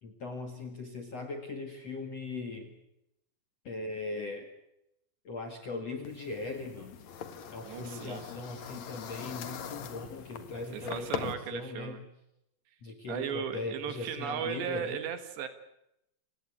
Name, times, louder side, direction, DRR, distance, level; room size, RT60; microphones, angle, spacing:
voice 1, 0.0-2.7 3.6-4.5 5.2-7.0 7.5-12.0 12.8-15.0, left 3 dB, 50° left, 5 dB, 2.0 m, -39 dB
sound 1, 6.0-11.3, left 7 dB, 65° left, 1.8 m, -42 dB
voice 2, 7.6-8.2 10.7-12.0 13.1-15.5, right 9 dB, 70° right, 10 dB, 3.3 m, -36 dB
29.0 x 17.5 x 8.6 m, 0.84 s
omnidirectional pair, 5.8 m